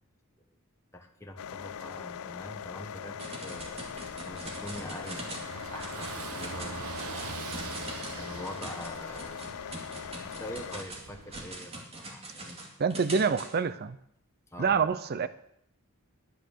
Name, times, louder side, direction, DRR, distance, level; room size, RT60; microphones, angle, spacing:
voice 1, 0.9-3.8 4.2-6.9 8.2-9.5 10.2-12.6 14.5-14.9, left 1 dB, 15° left, 2 dB, 1.3 m, -44 dB
sound 1, 1.4-10.8, left 8 dB, 65° left, 0.4 m, -41 dB
sound 2, 3.2-5.5 5.8-6.2 6.4-13.5, right 2 dB, 30° right, 2.4 m, -43 dB
Car passing by / Engine, 3.6-11.5, right 4 dB, 70° right, 1.0 m, -43 dB
voice 2, 12.8-14.0 14.6-15.3, right 5 dB, 45° right, 13 dB, 0.5 m, -26 dB
11.0 x 10.0 x 6.5 m, 0.74 s
head